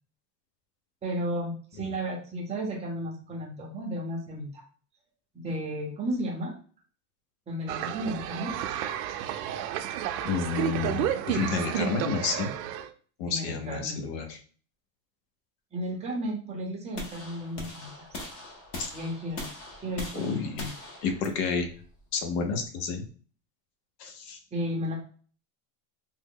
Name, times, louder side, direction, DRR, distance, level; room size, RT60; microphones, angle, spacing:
voice 1, 1.0-4.6 5.3-6.6 7.5-8.5 13.3-14.0 15.7-18.1 18.9-19.5 19.8-20.7 24.5-25.0, equal, 15° right, 0 dB, 0.6 m, -33 dB
sound 1, 7.7-12.9, right 10 dB, 80° right, 0.6 m, -31 dB
voice 2, 10.2-12.5 13.2-14.4 18.8-18.9 20.1-20.6 21.0-21.7 22.1-23.1 24.0-24.4, left 5 dB, 75° left, 6 dB, 0.9 m, -30 dB
sound 2, 16.9-23.0, left 2 dB, 30° left, 0.6 m, -41 dB
3.5 x 2.0 x 3.6 m, 0.42 s
supercardioid pair, 160°, 48 cm